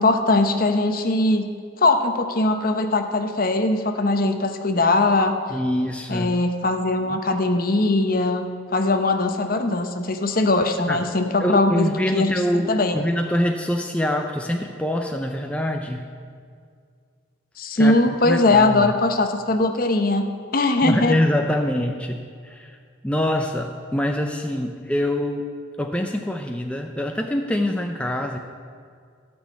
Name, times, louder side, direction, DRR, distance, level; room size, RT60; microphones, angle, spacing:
voice 1, 0.0-1.4 1.8-5.3 6.1-8.4 8.7-12.3 12.7-13.1 17.6-21.2, left 2 dB, 45° left, 6 dB, 0.9 m, -20 dB
voice 2, 5.5-6.4 10.9-11.0 11.4-16.0 17.8-17.9 18.2-18.9 20.8-22.8 23.0-25.4 25.8-28.4, left 1 dB, 5° left, 3 dB, 0.5 m, -24 dB
13.0 x 6.3 x 8.4 m, 2.1 s
head